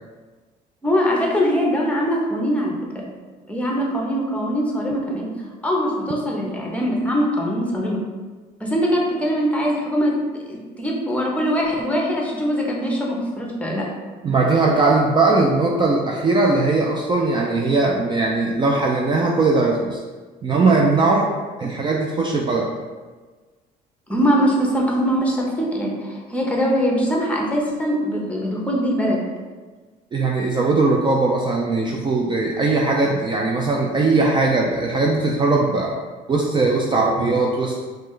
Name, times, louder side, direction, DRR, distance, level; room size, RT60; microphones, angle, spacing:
voice 1, 0.8-3.1 3.5-5.3 5.6-8.0 8.6-10.2 10.5-13.9 24.1-29.2, equal, 10° left, -2 dB, 0.9 m, -22 dB
voice 2, 14.2-20.0 20.4-21.3 21.6-22.7 30.1-35.9 36.3-37.9, right 3 dB, 25° right, -1 dB, 0.4 m, -19 dB
4.1 x 3.2 x 3.2 m, 1.4 s
cardioid pair, 110°, 17 cm